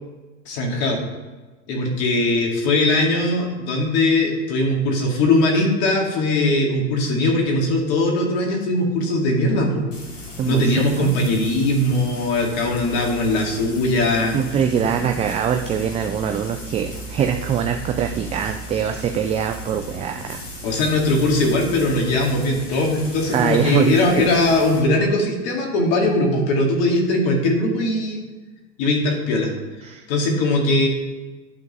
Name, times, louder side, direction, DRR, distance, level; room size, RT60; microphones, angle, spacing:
voice 1, 0.5-1.0 1.7-9.8 10.4-14.4 20.6-28.2 28.8-29.5 30.1-30.9, left 2 dB, 60° left, 1 dB, 2.3 m, -20 dB
Frying (food), 9.9-24.8, equal, 85° left, 2.7 m, -36 dB
voice 2, 10.4-11.2 14.3-20.7 23.3-24.3 29.8-30.0, right 8 dB, 20° right, 6 dB, 0.3 m, -23 dB
11.0 x 3.9 x 5.4 m, 1.2 s
hypercardioid pair, 105°, 37 cm